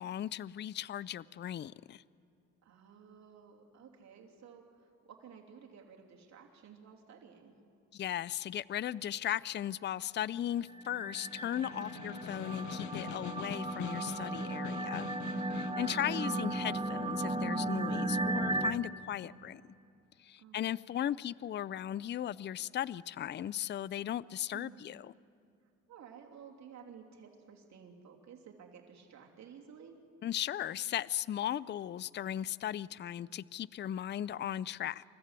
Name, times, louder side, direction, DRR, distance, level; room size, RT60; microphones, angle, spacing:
voice 1, 0.0-2.0 7.9-15.1 15.4-19.6 20.2-25.1 30.2-35.0, left 11 dB, 35° left, 21 dB, 0.4 m, -37 dB
voice 2, 2.6-7.6 11.8-12.3 15.5-15.8 20.4-20.7 24.5-24.8 25.9-30.0, right 7 dB, 65° right, 1 dB, 3.0 m, -54 dB
sound 1, 10.8-18.7, right 2 dB, 20° right, 1.3 m, -35 dB
Snare drum, 11.1-16.1, left 10 dB, 70° left, 0.8 m, -45 dB
28.0 x 14.5 x 8.2 m, 2.6 s
cardioid pair, 90°, 30 cm